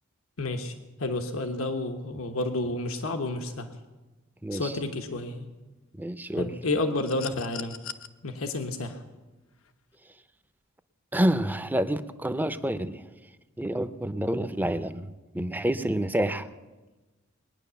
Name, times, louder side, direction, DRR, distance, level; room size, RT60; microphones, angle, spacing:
voice 1, 0.4-0.7 1.0-3.7 4.5-5.5 6.3-7.8 8.2-9.0, left 2 dB, 85° left, 5 dB, 1.1 m, -30 dB
voice 2, 4.4-4.7 6.0-6.5 11.1-13.0 13.6-15.1 15.3-16.5, right 1 dB, 10° right, 11 dB, 0.6 m, -28 dB
sound 1, 7.0-8.1 9.6-9.7, left 9 dB, 70° left, 0.8 m, -39 dB
21.0 x 9.5 x 6.9 m, 1.2 s
head